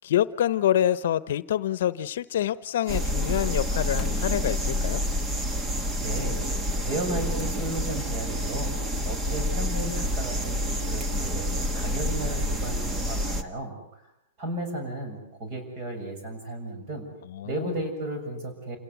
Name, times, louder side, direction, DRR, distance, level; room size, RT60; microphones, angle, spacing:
voice 1, 0.0-5.0 17.3-17.7, left 11 dB, 65° left, 16 dB, 0.9 m, -26 dB
sound 1, 2.9-13.4, equal, 15° right, 1.4 m, -28 dB
voice 2, 6.0-6.4 6.8-8.8 9.0-11.4 11.7-14.0 14.4-17.1 17.4-18.8, right 1 dB, 35° right, 6 dB, 7.2 m, -34 dB
28.0 x 17.5 x 8.2 m, 0.80 s
supercardioid pair, 160°, 0 cm